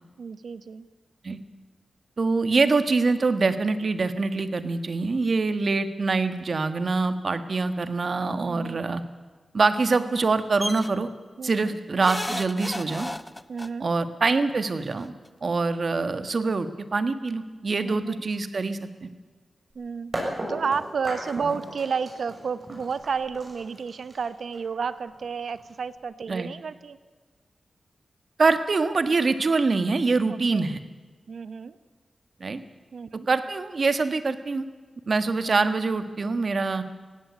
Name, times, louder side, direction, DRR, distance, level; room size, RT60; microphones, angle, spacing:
voice 1, 0.2-0.9 8.4-8.9 11.4-11.8 13.5-13.9 17.8-18.2 19.7-20.1 20.5-27.0 30.3-30.6 31.3-31.7 32.9-33.3, right 5 dB, 75° right, 14 dB, 0.9 m, -31 dB
voice 2, 2.2-9.0 9.5-11.1 11.4-13.1 13.8-15.1 15.4-19.1 21.4-21.5 26.3-26.5 28.4-30.8 32.4-32.6 33.3-34.6 35.1-36.8, right 3 dB, 50° right, 11 dB, 1.5 m, -24 dB
sound 1, 10.6-10.9 12.0-13.7 14.9-15.0 15.3-15.4, left 1 dB, 15° left, 0.8 m, -33 dB
sound 2, 19.7-19.8 20.1-26.0, right 1 dB, 30° right, 7.3 m, -36 dB
16.5 x 16.5 x 9.7 m, 1.4 s
wide cardioid pair, 100°, 0 cm